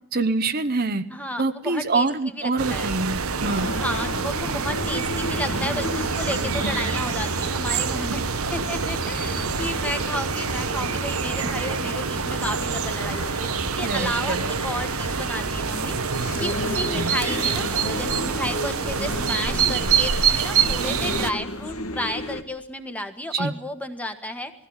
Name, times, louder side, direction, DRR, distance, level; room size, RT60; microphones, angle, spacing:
voice 1, 0.1-1.0 1.4-3.7 13.8-14.5 16.9-17.1 23.3-23.5, right 3 dB, 45° right, 9 dB, 0.9 m, -25 dB
voice 2, 1.1-2.9 3.8-8.2 8.5-13.5 13.8-16.0 16.4-24.5, left 1 dB, 5° left, 7 dB, 1.5 m, -32 dB
sound 1, 2.6-21.3, right 6 dB, 80° right, 1.1 m, -26 dB
sound 2, 3.4-22.4, left 1 dB, 80° left, 2.0 m, -33 dB
20.5 x 15.5 x 8.9 m, 0.78 s
head